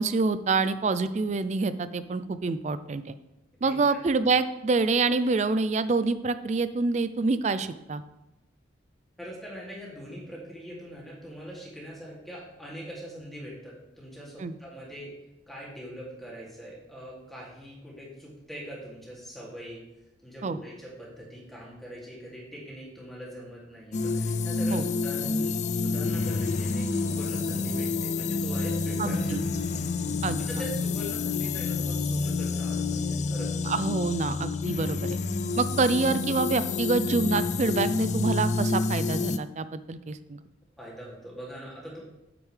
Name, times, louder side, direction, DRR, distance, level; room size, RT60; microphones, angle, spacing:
voice 1, 0.0-3.1 3.6-8.0 14.4-14.5 20.4-20.6 24.7-24.8 29.0-29.4 30.2-30.4 33.7-35.2 35.6-40.4, right 3 dB, 40° right, 13 dB, 0.4 m, -26 dB
voice 2, 3.6-4.0 9.2-15.1 15.5-19.8 20.2-29.3 30.5-33.7 40.8-42.0, equal, ahead, -6 dB, 2.5 m, -42 dB
sound 1, 23.9-39.4, left 4 dB, 40° left, 0.3 m, -28 dB
8.7 x 8.1 x 3.3 m, 0.96 s
head